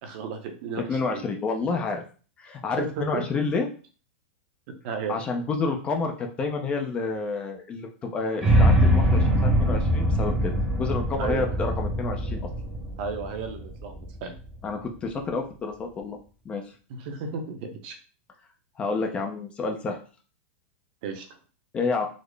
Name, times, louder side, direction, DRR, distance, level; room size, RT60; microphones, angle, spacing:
voice 1, 0.0-1.2 2.8-3.3 4.8-5.1 11.2-11.6 13.0-14.3 16.9-18.0 21.0-21.3, right 5 dB, 45° right, 6 dB, 0.6 m, -34 dB
voice 2, 0.9-2.0 2.4-3.7 5.1-10.5 10.8-12.4 14.6-16.2 16.5-16.6 18.8-20.0 21.7-22.1, left 4 dB, 15° left, 4 dB, 0.4 m, -29 dB
sound 1, 8.4-14.5, equal, 10° right, 0.8 m, -23 dB
3.9 x 2.0 x 3.2 m, 0.38 s
supercardioid pair, 160°, 7 cm